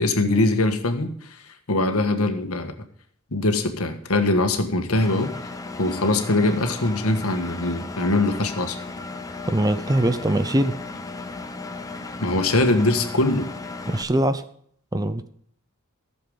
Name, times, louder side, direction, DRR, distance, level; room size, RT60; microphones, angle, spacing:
voice 1, 0.0-1.4 1.7-2.7 3.3-5.3 5.8-8.8 12.2-13.5, left 2 dB, 80° left, 6 dB, 1.5 m, -22 dB
Engine, 4.9-14.0, left 3 dB, 15° left, 0.8 m, -35 dB
voice 2, 9.5-10.8 13.9-14.4 14.9-15.3, right 1 dB, 15° right, 11 dB, 0.6 m, -22 dB
15.0 x 7.1 x 5.1 m, 0.63 s
head